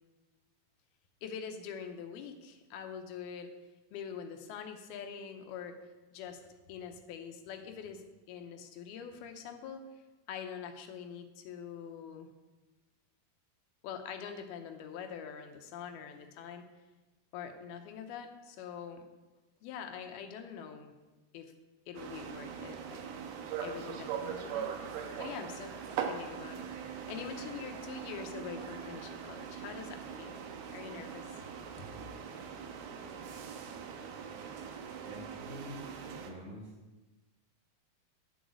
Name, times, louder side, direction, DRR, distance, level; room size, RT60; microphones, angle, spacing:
voice 1, 1.2-3.5 3.9-5.8 6.1-6.4 6.7-9.8 10.3-12.3 13.8-16.7 17.3-19.0 19.6-20.9 21.3-21.5 21.9-23.0 23.6-24.7 25.2-25.7 26.0-26.7 27.1-30.4 30.7-31.3 31.8-31.9, left 7 dB, 85° left, 6 dB, 2.8 m, -44 dB
sound 1, 22.0-36.3, right 7 dB, 85° right, 3.0 m, -41 dB
voice 2, 35.0-36.7, equal, 65° right, -2 dB, 4.3 m, -47 dB
11.5 x 6.4 x 8.1 m, 1.2 s
omnidirectional pair, 4.4 m